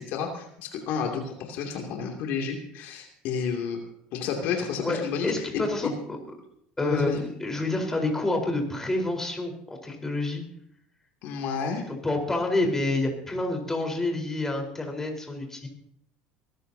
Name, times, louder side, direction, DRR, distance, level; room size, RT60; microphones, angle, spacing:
voice 1, 0.0-3.8 4.1-5.9 6.8-7.2 11.2-11.8, left 6 dB, 65° left, 2 dB, 2.7 m, -31 dB
voice 2, 4.8-6.2 6.8-10.4 11.9-15.7, left 2 dB, 10° left, 2 dB, 4.2 m, -28 dB
23.0 x 14.0 x 2.8 m, 0.69 s
supercardioid pair, 100°, 3 cm